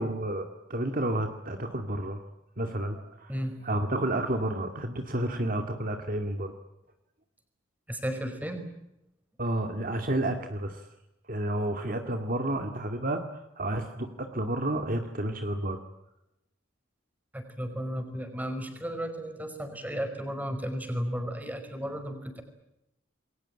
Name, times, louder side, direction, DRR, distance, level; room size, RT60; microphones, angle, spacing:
voice 1, 0.0-2.2 2.6-3.3 3.6-6.5 9.4-10.9 11.3-15.8, right 1 dB, 45° right, 5 dB, 2.2 m, -31 dB
voice 2, 3.3-3.7 7.9-8.7 17.3-22.4, equal, 10° right, 6 dB, 5.3 m, -34 dB
28.5 x 22.5 x 9.0 m, 0.88 s
head